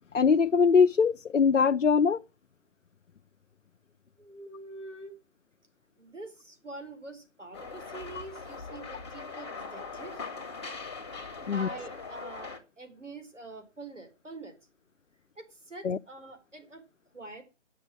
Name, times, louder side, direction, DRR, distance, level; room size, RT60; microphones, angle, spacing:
voice 1, 0.1-2.2 8.2-8.3 11.5-11.7 15.8-16.0, left 5 dB, 90° left, 0.6 m, -22 dB
voice 2, 4.2-5.2 6.0-10.3 11.4-14.5 15.3-16.8 17.1-17.4, right 2 dB, 75° right, 4.8 m, -45 dB
sound 1, 7.5-12.6, left 4 dB, 20° left, 1.4 m, -41 dB
9.4 x 6.7 x 8.7 m
figure-of-eight pair, 155°, 36 cm